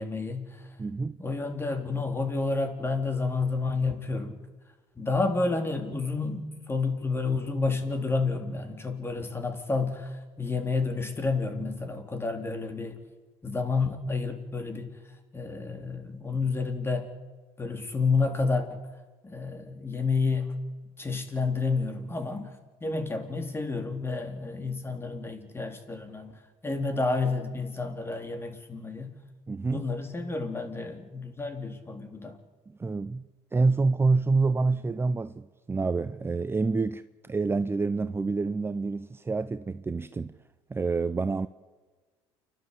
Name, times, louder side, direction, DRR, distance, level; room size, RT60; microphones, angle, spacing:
voice 1, 0.0-0.8 1.2-4.4 5.0-13.0 13.4-15.0 15.3-17.1 17.6-18.8 19.2-20.6 21.0-29.1 29.7-32.4, left 3 dB, 20° left, 3.9 m, -30 dB
voice 2, 0.8-1.2 29.5-29.8 32.7-40.3 40.7-41.5, right 3 dB, 20° right, 0.7 m, -27 dB
29.0 x 12.5 x 8.4 m
supercardioid pair, 85°, 12 cm